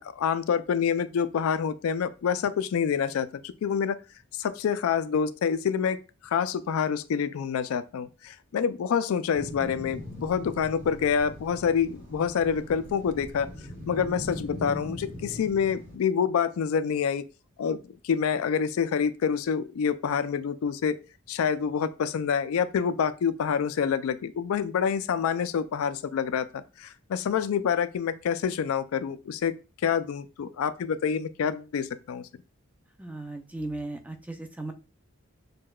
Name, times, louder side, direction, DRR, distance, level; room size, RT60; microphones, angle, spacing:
voice 1, 0.0-4.0 4.4-6.0 6.2-13.5 13.9-17.2 17.6-21.0 21.3-29.5 29.8-32.3, left 7 dB, 80° left, 0.3 m, -27 dB
sound 1, 9.3-16.0, left 1 dB, 40° right, 2.1 m, -40 dB
voice 2, 33.0-34.7, right 2 dB, 5° right, 0.3 m, -36 dB
6.3 x 2.2 x 2.3 m
head